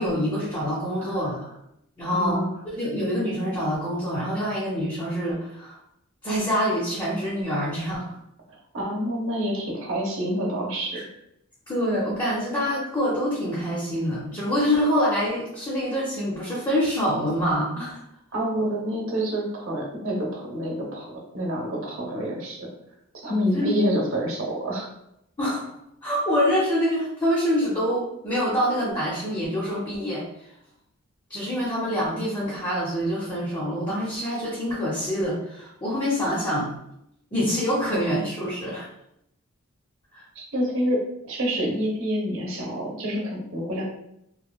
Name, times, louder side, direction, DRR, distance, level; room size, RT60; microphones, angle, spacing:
voice 1, 0.0-1.4 2.0-2.4 2.7-5.8 6.2-8.2 10.9-11.0 11.7-18.0 23.5-23.7 25.4-25.7 26.0-30.2 31.3-36.7 37.3-38.9 40.1-40.2, equal, 20° left, -7 dB, 0.6 m, -26 dB
voice 2, 1.0-1.4 2.1-2.6 8.5-11.0 18.3-22.7 23.1-24.9 40.3-41.0 41.3-43.8, equal, 65° right, -1 dB, 0.8 m, -27 dB
2.9 x 2.3 x 2.2 m, 0.78 s
head